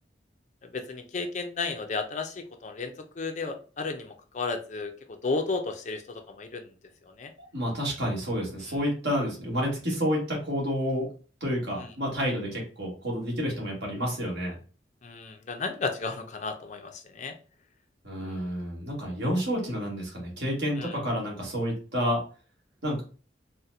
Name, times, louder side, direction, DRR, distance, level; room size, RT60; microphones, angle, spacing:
voice 1, 0.7-4.9 5.2-6.7 7.2-7.3 15.0-17.3 18.2-18.4 20.8-21.0, left 4 dB, 40° left, 6 dB, 0.4 m, -33 dB
voice 2, 7.5-11.1 11.4-14.6 18.0-22.2 22.8-23.0, equal, 70° right, -2 dB, 1.5 m, -29 dB
4.0 x 2.1 x 2.6 m, 0.38 s
head